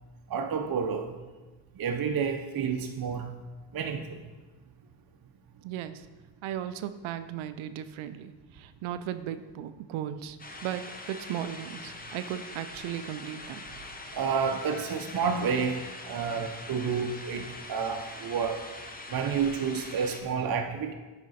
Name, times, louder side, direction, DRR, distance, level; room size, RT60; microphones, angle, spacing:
voice 1, 0.3-1.2 1.8-3.3 3.7-4.2 14.1-18.6 19.1-20.9, right 6 dB, 50° right, 5 dB, 0.7 m, -30 dB
voice 2, 5.6-6.1 6.4-10.4 10.6-13.6, right 10 dB, 85° right, 12 dB, 0.5 m, -36 dB
sound 1, 10.4-20.2, left 2 dB, 20° left, 1.0 m, -43 dB
9.2 x 5.0 x 4.1 m, 1.3 s
cardioid pair, 70°, 47 cm